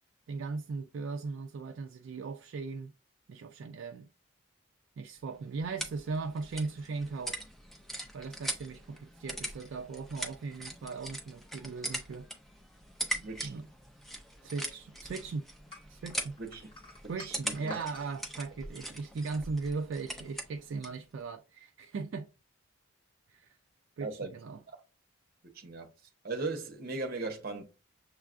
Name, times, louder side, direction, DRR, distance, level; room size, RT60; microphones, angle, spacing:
voice 1, 0.3-2.9 3.3-4.1 5.0-7.4 8.1-12.3 13.4-13.7 14.4-15.4 15.9-16.4 17.1-22.3 23.3-23.6 24.0-24.6, right 4 dB, 65° right, 0.3 m, -38 dB
sound 1, 5.2-21.0, right 1 dB, ahead, 0.4 m, -42 dB
voice 2, 13.1-13.6 16.4-16.7 17.2-17.7 24.0-24.3 24.7-24.8 25.5-25.9 26.2-27.6, right 3 dB, 50° right, 0.8 m, -38 dB
sound 2, 15.7-18.1, left 2 dB, 25° left, 1.2 m, -47 dB
6.4 x 2.3 x 2.4 m
head